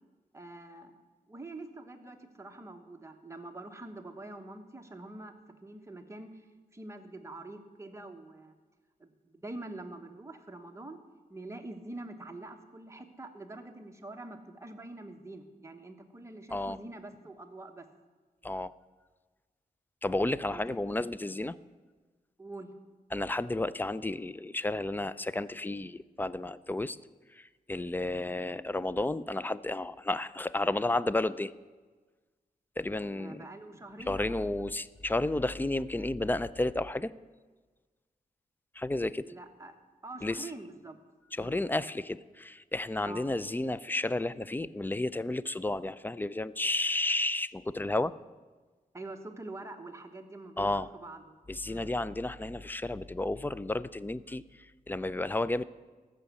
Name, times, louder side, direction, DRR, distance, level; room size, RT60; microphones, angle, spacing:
voice 1, 0.3-1.0 1.3-5.3 5.6-6.5 6.7-8.6 9.0-11.0 11.3-17.9 20.5-20.8 22.4-22.7 33.1-34.4 39.2-39.8 40.0-41.0 41.4-41.6 43.0-43.3 48.9-51.3 51.7-51.9, right 2 dB, 20° right, 4 dB, 1.1 m, -45 dB
voice 2, 20.0-21.6 23.1-27.0 27.3-31.5 32.8-33.5 34.1-37.1 38.7-39.3 40.2-40.5 41.3-48.2 50.6-50.9 51.5-55.7, left 2 dB, 10° left, 16 dB, 0.3 m, -32 dB
14.5 x 6.3 x 8.2 m, 1.4 s
wide cardioid pair, 120°, 15 cm